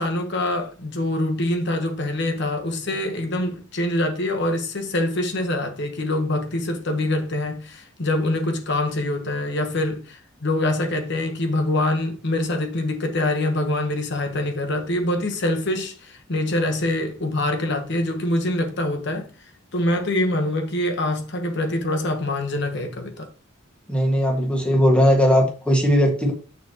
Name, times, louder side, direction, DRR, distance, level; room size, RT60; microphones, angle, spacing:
voice 1, 0.0-19.3 19.7-23.3, left 1 dB, 55° left, 1.2 m, -24 dB
voice 2, 23.9-26.3, equal, 5° left, 1.7 m, -18 dB
6.5 x 6.2 x 3.0 m
head